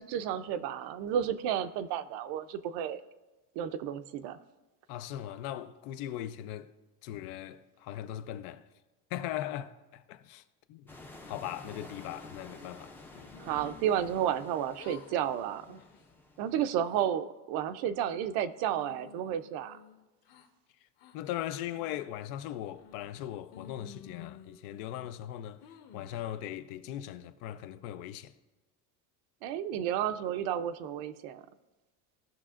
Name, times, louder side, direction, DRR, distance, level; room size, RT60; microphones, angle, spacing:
voice 1, 0.0-3.0 3.6-4.4 13.4-15.8 16.4-19.8 29.4-31.4, right 10 dB, 60° right, 0.6 m, -32 dB
voice 2, 4.9-6.7 7.0-8.6 9.1-10.4 10.7-10.9 11.3-13.3 21.1-25.6 25.9-28.3, left 12 dB, 85° left, 0.7 m, -39 dB
sound 1, 10.9-16.8, left 2 dB, 5° left, 0.4 m, -50 dB
sound 2, 13.3-14.5 14.7-15.3 15.7-16.0 16.5-17.1 17.6-18.3 18.7-20.5 21.0-21.2 21.7-22.2 22.7-23.2 23.5-25.1 25.6-26.2, left 7 dB, 55° left, 1.2 m, -54 dB
17.0 x 5.9 x 2.5 m
cardioid pair, 160°, 44 cm